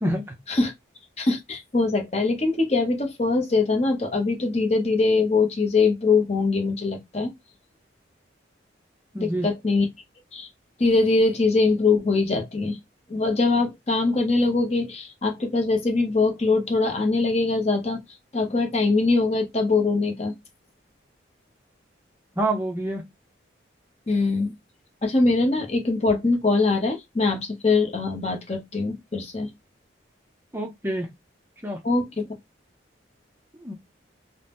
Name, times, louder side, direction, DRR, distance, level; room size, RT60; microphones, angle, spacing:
voice 1, 1.2-7.3 9.2-9.9 10.3-10.5 10.8-12.8 13.1-18.0 18.3-20.3 24.1-24.5 25.0-29.5 31.8-32.3, left 3 dB, 35° left, 0.7 m, -22 dB
voice 2, 9.1-9.5 22.4-23.0 30.5-31.1 31.6-31.8 33.6-33.7, right 1 dB, 10° right, 0.5 m, -27 dB
2.7 x 2.0 x 3.3 m
head